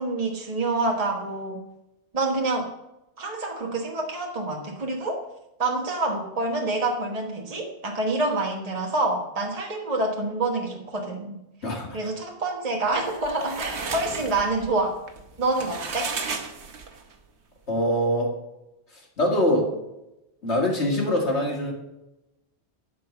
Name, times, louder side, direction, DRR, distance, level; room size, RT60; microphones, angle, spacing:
voice 1, 0.0-1.6 2.1-2.7 3.2-5.2 5.6-11.4 11.9-15.0 15.4-16.1, right 2 dB, 35° right, 0 dB, 1.4 m, -27 dB
voice 2, 11.6-12.0 17.7-18.3 18.9-19.7 20.4-21.7, equal, 85° left, 0 dB, 2.5 m, -24 dB
sound 1, 13.0-17.2, right 5 dB, 85° right, 1.3 m, -34 dB
12.0 x 5.2 x 7.2 m, 0.92 s
omnidirectional pair, 1.1 m